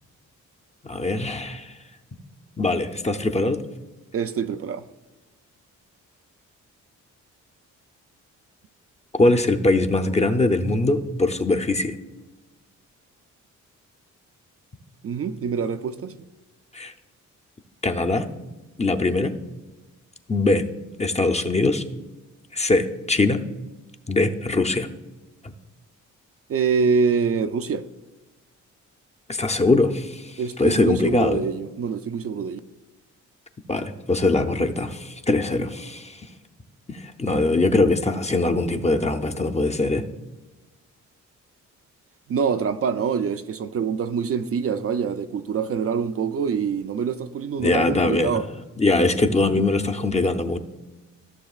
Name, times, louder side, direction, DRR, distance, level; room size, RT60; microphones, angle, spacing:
voice 1, 0.8-1.7 2.6-3.6 9.2-12.0 16.7-16.9 17.8-18.3 18.8-19.3 20.3-20.7 21.0-21.8 22.5-23.4 24.1-24.9 25.4-25.5 29.3-31.4 33.7-36.2 36.9-40.1 47.6-48.4 48.8-50.6, left 2 dB, 20° left, 0.6 m, -22 dB
voice 2, 4.1-4.9 15.0-16.1 26.5-27.8 30.4-32.6 42.3-48.4, right 6 dB, 50° right, 0.5 m, -25 dB
15.0 x 6.8 x 2.4 m
cardioid pair, 85°, 31 cm